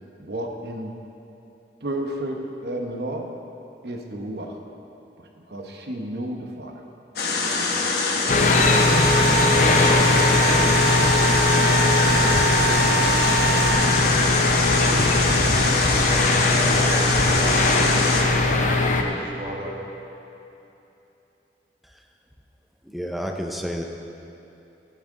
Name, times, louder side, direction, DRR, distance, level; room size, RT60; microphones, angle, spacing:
voice 1, 0.2-0.9 1.8-2.4 2.6-3.2 3.8-4.6 5.2-6.8 7.3-7.8 8.1-8.4, right 1 dB, 65° right, 2 dB, 1.0 m, -32 dB
sound 1, 7.2-18.2, left 3 dB, 60° left, 1.1 m, -24 dB
sound 2, 8.3-19.0, left 2 dB, 45° left, 0.6 m, -20 dB
sound 3, 8.4-13.7, right 7 dB, 90° left, 1.4 m, -27 dB
voice 2, 11.9-12.4 16.4-19.7, equal, 30° right, -4 dB, 1.6 m, -35 dB
voice 3, 22.8-23.8, equal, ahead, 2 dB, 0.6 m, -30 dB
12.0 x 10.0 x 3.8 m, 2.9 s
head